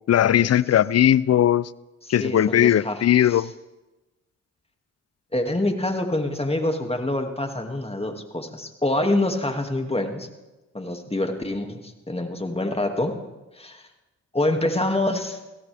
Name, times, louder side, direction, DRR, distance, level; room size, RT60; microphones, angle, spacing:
voice 1, 0.1-1.7 2.1-3.5, left 11 dB, 50° left, 0.5 m, -18 dB
voice 2, 2.0-3.0 3.3-3.4 5.3-10.3 10.7-13.1 13.6-13.8 14.3-15.4, left 1 dB, 20° left, 2.3 m, -26 dB
23.0 x 16.5 x 3.5 m
supercardioid pair, 45°, 32 cm